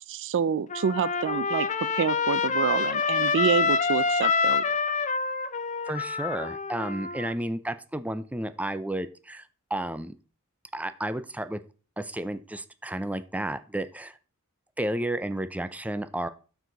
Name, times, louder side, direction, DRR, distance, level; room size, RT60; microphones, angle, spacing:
voice 1, 0.1-1.7 2.0-4.6, right 7 dB, 60° right, 0.4 m, -27 dB
Trumpet, 0.7-7.3, left 5 dB, 35° left, 0.6 m, -27 dB
voice 2, 5.9-9.4 9.7-10.1 10.7-11.6 12.0-14.2 14.8-16.3, right 1 dB, 5° right, 0.5 m, -32 dB
12.5 x 4.7 x 3.9 m
head